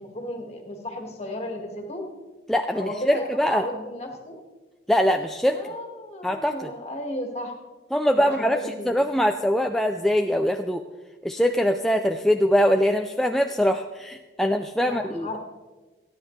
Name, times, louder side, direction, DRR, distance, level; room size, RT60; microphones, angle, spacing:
voice 1, 0.0-2.0 2.7-4.4 5.5-7.6 8.1-8.9 14.8-15.4, left 1 dB, 35° left, 2 dB, 1.9 m, -34 dB
voice 2, 2.5-3.7 4.9-5.6 6.2-6.7 7.9-8.6 8.9-10.8 11.2-15.3, equal, ahead, 4 dB, 0.3 m, -22 dB
28.0 x 9.8 x 3.2 m, 1.3 s
head